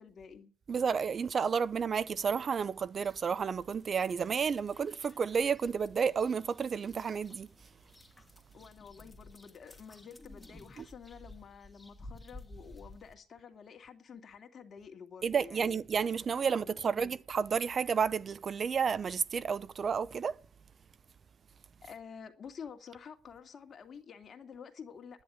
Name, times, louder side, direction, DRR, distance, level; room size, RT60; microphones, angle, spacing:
voice 1, 0.0-0.5 8.5-15.8 16.4-17.1 21.8-25.2, left 6 dB, 50° left, 2.3 m, -50 dB
voice 2, 0.7-7.5 15.2-20.3, right 6 dB, 45° right, 0.7 m, -31 dB
sound 1, 2.9-13.1, left 1 dB, 15° left, 2.3 m, -54 dB
10.5 x 10.0 x 9.5 m
cardioid pair, 90°, 0 cm